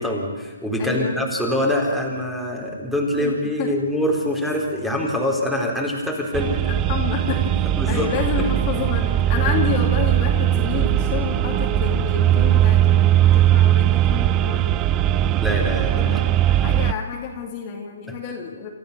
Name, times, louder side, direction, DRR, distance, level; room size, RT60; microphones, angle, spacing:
voice 1, 0.0-6.5 7.8-8.1 8.4-8.5 15.4-16.2, left 1 dB, ahead, -1 dB, 4.0 m, -24 dB
voice 2, 0.8-1.2 3.2-3.3 3.6-3.7 6.6-14.8 16.0-18.7, left 6 dB, 30° left, 0 dB, 2.6 m, -29 dB
sound 1, 6.3-16.9, right 12 dB, 25° right, 0.6 m, -19 dB
27.5 x 14.5 x 6.8 m, 1.3 s
hypercardioid pair, 140°, 0 cm